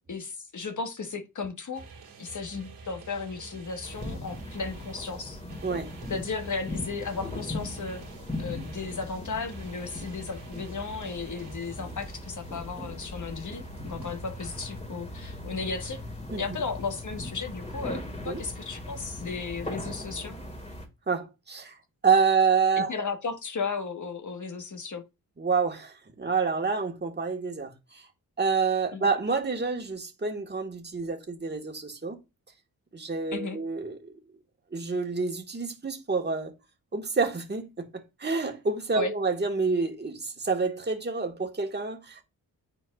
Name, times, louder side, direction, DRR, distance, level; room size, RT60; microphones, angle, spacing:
voice 1, 0.1-1.8 2.2-5.4 6.1-8.0 8.4-16.0 16.3-20.4 22.8-25.0 28.9-29.1 33.3-33.6 38.9-39.1, left 4 dB, 50° left, 1.4 m, -35 dB
sound 1, 1.7-14.9, right 3 dB, 80° right, 2.3 m, -48 dB
sound 2, 3.8-20.9, left 1 dB, 15° left, 2.1 m, -39 dB
voice 2, 5.6-5.9 16.3-16.4 18.2-18.4 21.1-21.8 22.0-22.9 25.4-28.1 28.4-32.2 32.9-34.1 34.7-36.5 36.9-37.9 38.2-42.2, right 5 dB, 25° right, 1.6 m, -28 dB
9.5 x 4.5 x 2.4 m
cardioid pair, 60°, 38 cm